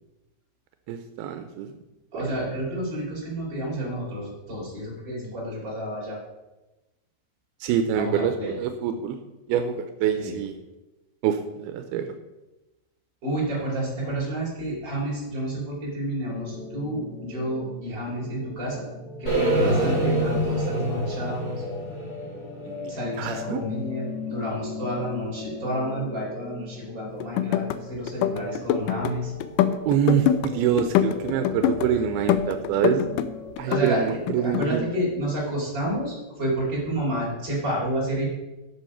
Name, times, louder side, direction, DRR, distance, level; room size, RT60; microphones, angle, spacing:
voice 1, 0.9-1.7 2.2-2.3 7.6-9.2 9.5-10.5 11.2-12.1 22.7-22.9 23.2-23.6 29.9-33.1 33.6-34.9, right 8 dB, 85° right, 7 dB, 2.6 m, -25 dB
voice 2, 2.1-6.2 7.9-8.6 10.1-10.4 13.2-18.9 19.2-21.6 22.9-29.3 33.7-34.0 34.4-38.2, right 1 dB, 30° right, -5 dB, 4.6 m, -30 dB
sound 1, 16.3-33.5, left 3 dB, 55° left, 4.6 m, -39 dB
sound 2, 19.3-23.3, right 1 dB, 20° left, 4.8 m, -26 dB
sound 3, 27.2-27.8 28.1-29.1 29.4-30.5 30.8-31.9 32.3-33.3 33.6-34.7, left 10 dB, 85° left, 1.9 m, -24 dB
11.0 x 7.0 x 5.6 m, 1.1 s
omnidirectional pair, 4.5 m